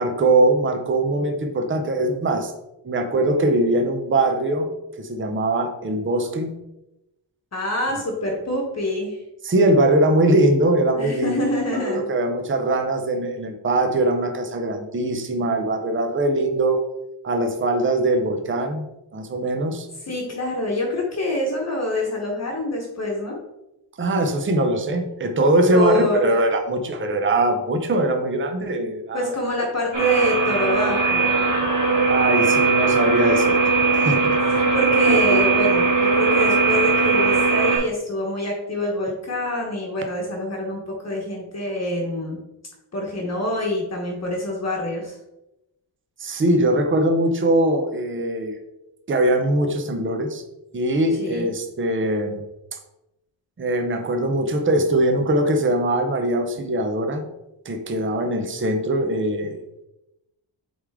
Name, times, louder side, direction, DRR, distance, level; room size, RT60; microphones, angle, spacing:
voice 1, 0.0-2.5 2.8-4.7 5.0-6.6 9.4-11.5 11.7-16.8 17.2-18.9 19.1-19.9 24.0-29.4 31.9-33.6 33.9-34.4 46.2-48.6 49.1-50.4 50.7-52.4 53.6-57.2 57.6-59.6, right 1 dB, 25° right, 5 dB, 0.6 m, -21 dB
voice 2, 7.5-9.2 11.0-12.1 20.0-23.4 25.7-26.4 29.1-31.5 34.5-42.4 42.9-45.2 51.2-51.5, left 1 dB, 35° left, -1 dB, 1.1 m, -26 dB
sound 1, 29.9-37.8, right 4 dB, 75° right, 1.9 m, -19 dB
7.9 x 3.6 x 3.6 m, 0.93 s
wide cardioid pair, 160°, 45 cm